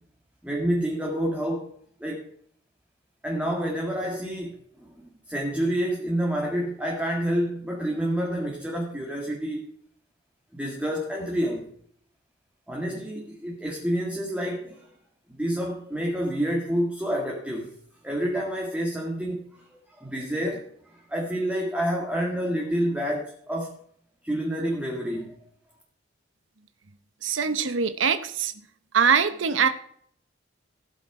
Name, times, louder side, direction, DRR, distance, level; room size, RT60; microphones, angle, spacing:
voice 1, 0.4-1.7 2.0-2.3 3.2-9.7 10.5-11.7 12.7-14.9 15.3-17.7 18.0-23.8 24.2-25.3, equal, 5° right, -1 dB, 1.8 m, -28 dB
voice 2, 27.2-28.6 28.9-29.7, right 6 dB, 85° right, 10 dB, 0.9 m, -23 dB
15.5 x 7.8 x 4.8 m, 0.63 s
head